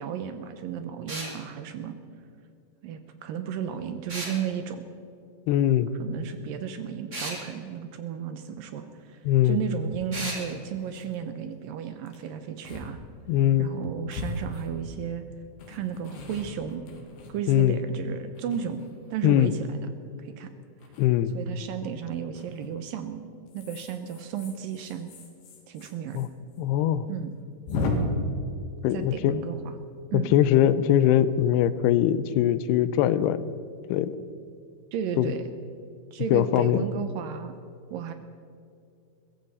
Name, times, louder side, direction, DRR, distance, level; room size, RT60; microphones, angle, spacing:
voice 1, 0.0-2.0 2.8-4.8 6.0-13.0 13.6-15.2 15.7-16.8 17.3-18.8 19.1-19.9 20.2-20.5 21.3-23.2 23.5-25.1 25.7-26.2 27.1-27.3 28.9-29.6 30.1-30.3 34.9-35.4 36.1-37.5 37.9-38.1, right 8 dB, 75° right, 9 dB, 2.3 m, -34 dB
sound 1, 1.1-1.3 4.1-4.4 7.1-7.4 10.1-10.4, right 2 dB, 20° right, 2.6 m, -34 dB
voice 2, 5.5-5.9 9.3-9.6 13.3-13.7 17.5-17.8 19.2-19.5 21.0-21.3 26.1-26.3 26.6-27.1 28.8-29.4 30.1-33.4 33.9-34.2 35.2-35.3 36.3-36.8, left 11 dB, 85° left, 15 dB, 2.7 m, -22 dB
sound 2, 9.9-10.0 10.5-10.6 10.8-11.2 12.1-12.2 12.7-12.9 13.2-13.3 14.1-15.1 15.6-17.8 18.4-19.1 20.8-21.1 22.4-22.7 23.5-26.3 26.5-26.6 26.9-27.0 27.7-27.9, left 4 dB, 70° left, 3.9 m, -37 dB
21.5 x 15.0 x 4.2 m, 2.5 s
omnidirectional pair, 4.6 m